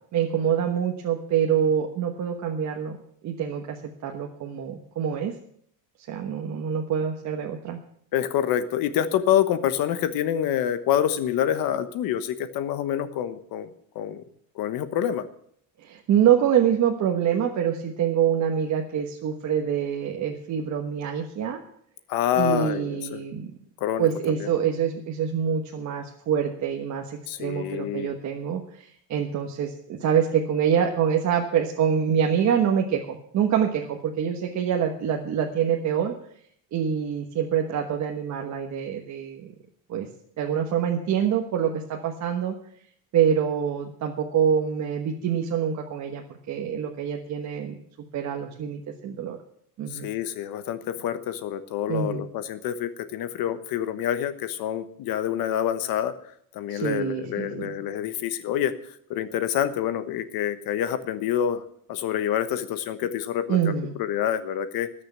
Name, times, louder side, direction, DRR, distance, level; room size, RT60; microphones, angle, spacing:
voice 1, 0.1-3.0 3.2-5.4 6.1-7.8 15.8-21.6 22.3-23.5 24.0-36.1 36.7-39.5 39.9-40.1 40.4-42.5 43.1-47.7 48.1-49.4 49.8-50.1 51.9-52.2 56.7-57.7 63.5-63.9, right 8 dB, 40° right, 2 dB, 1.4 m, -25 dB
voice 2, 8.1-13.7 13.9-14.2 14.6-15.2 22.1-23.2 23.8-24.1 27.3-28.1 49.9-56.1 56.5-58.7 59.1-61.6 61.9-63.7 64.0-64.9, left 10 dB, 55° left, 11 dB, 1.2 m, -27 dB
18.5 x 6.6 x 7.3 m, 0.66 s
cardioid pair, 140°, 41 cm